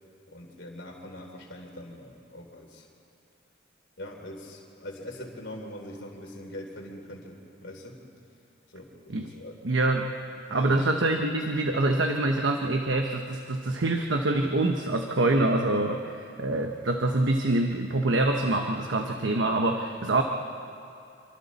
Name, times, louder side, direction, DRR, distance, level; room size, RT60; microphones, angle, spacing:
voice 1, 0.3-2.9 4.0-8.0 8.7-9.6 10.5-10.9, left 1 dB, 70° left, -1 dB, 3.4 m, -42 dB
voice 2, 9.6-10.1 10.5-20.2, right 2 dB, 75° right, 3 dB, 1.0 m, -25 dB
26.5 x 24.5 x 4.2 m, 2.5 s
head